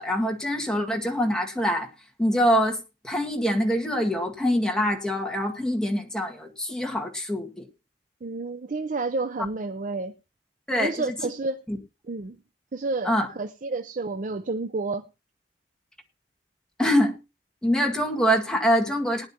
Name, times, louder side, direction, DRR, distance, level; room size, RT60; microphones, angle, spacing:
voice 1, 0.0-1.9 2.2-2.8 3.0-7.7 10.7-11.1 11.7-11.8 13.1-13.3 16.8-17.1 17.6-19.3, equal, 5° left, 1.8 m, -24 dB
voice 2, 8.2-10.1 10.8-11.6 12.0-12.4 12.7-15.0, right 3 dB, 50° right, 0.6 m, -30 dB
19.5 x 10.5 x 2.8 m
head